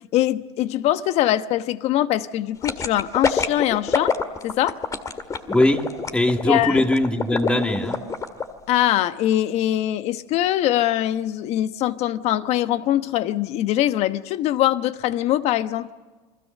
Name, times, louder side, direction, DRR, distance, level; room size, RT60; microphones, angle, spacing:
voice 1, 0.1-4.1 4.4-4.8 6.5-6.8 8.7-15.9, left 13 dB, 50° left, 1.1 m, -22 dB
sound 1, 2.6-8.4 8.8-8.9, left 5 dB, 25° left, 1.9 m, -25 dB
voice 2, 5.5-5.9 6.1-8.0, left 1 dB, 10° left, 2.1 m, -20 dB
29.5 x 21.5 x 6.6 m
supercardioid pair, 115°, 14 cm